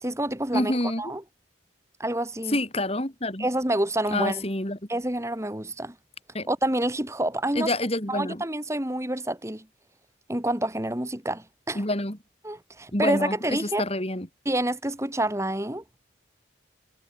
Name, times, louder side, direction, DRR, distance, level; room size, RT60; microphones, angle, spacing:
voice 1, 0.0-0.7 1.0-1.2 2.0-2.6 3.4-4.4 4.9-5.9 6.5-7.7 8.1-9.6 10.3-11.8 12.4-13.8 14.5-15.8, right 1 dB, 15° right, 2.5 m, -28 dB
voice 2, 0.5-1.0 2.5-3.5 4.1-4.8 6.3-6.5 7.6-8.4 11.8-12.2 12.9-14.3, left 1 dB, 30° left, 4.1 m, -27 dB
head